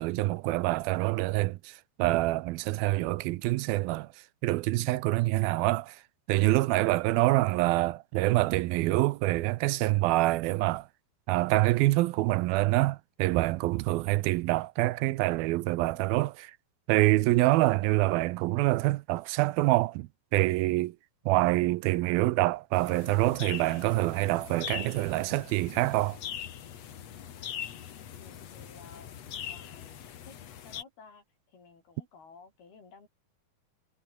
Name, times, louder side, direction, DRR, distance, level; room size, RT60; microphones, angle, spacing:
voice 1, 0.0-4.1 4.4-6.0 6.3-10.9 11.3-16.5 16.9-21.0 21.3-26.2, right 18 dB, 85° right, 2.5 m, -26 dB
sound 1, 22.7-30.8, left 9 dB, 50° left, 2.4 m, -42 dB
voice 2, 28.1-29.2 29.4-30.4 30.6-33.1, left 5 dB, 90° left, 8.5 m, -54 dB
omnidirectional pair, 4.3 m